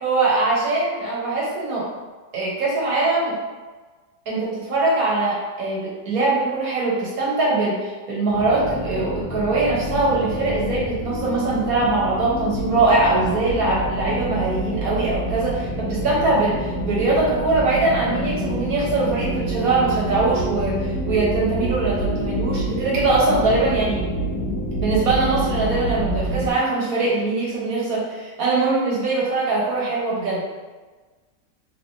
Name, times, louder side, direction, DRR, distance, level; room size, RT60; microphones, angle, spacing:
voice 1, 0.0-1.9 2.3-3.3 4.3-24.0 24.8-30.4, right 3 dB, 60° right, -5 dB, 1.2 m, -22 dB
sound 1, 8.3-26.5, right 1 dB, 70° left, 1.0 m, -27 dB
3.6 x 2.7 x 2.5 m, 1.3 s
omnidirectional pair, 1.9 m